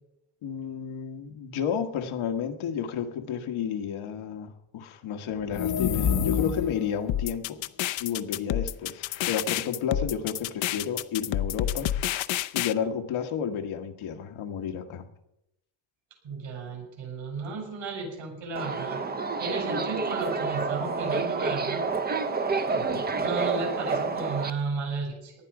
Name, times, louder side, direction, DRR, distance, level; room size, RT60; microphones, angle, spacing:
voice 1, 0.4-7.6 8.0-11.9 12.5-15.0 22.7-23.1, left 7 dB, 90° left, 5 dB, 1.7 m, -32 dB
sound 1, 5.4-7.0, left 8 dB, 50° left, 0.9 m, -27 dB
sound 2, 7.1-12.7, left 12 dB, 70° left, 0.7 m, -29 dB
voice 2, 16.2-19.0 19.4-21.9 23.2-25.3, right 4 dB, 70° right, 1 dB, 6.9 m, -33 dB
Subway metro underground, 18.6-24.5, right 4 dB, 20° right, 0.6 m, -29 dB
19.0 x 12.0 x 5.0 m, 0.84 s
cardioid pair, 150°, 47 cm